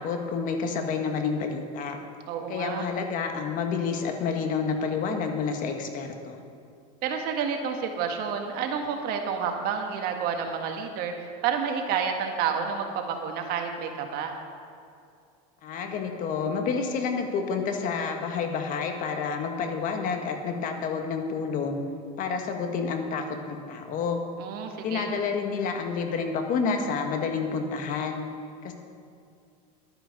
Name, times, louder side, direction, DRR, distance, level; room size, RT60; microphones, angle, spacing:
voice 1, 0.0-2.0 2.5-6.4 15.6-21.8 22.2-24.2 24.8-28.2 28.6-28.7, left 5 dB, 45° left, 5 dB, 1.4 m, -29 dB
voice 2, 2.3-2.8 7.0-11.1 11.4-14.3 24.4-25.1, right 6 dB, 55° right, 4 dB, 1.6 m, -29 dB
11.5 x 9.7 x 5.3 m, 2.4 s
supercardioid pair, 115°, 19 cm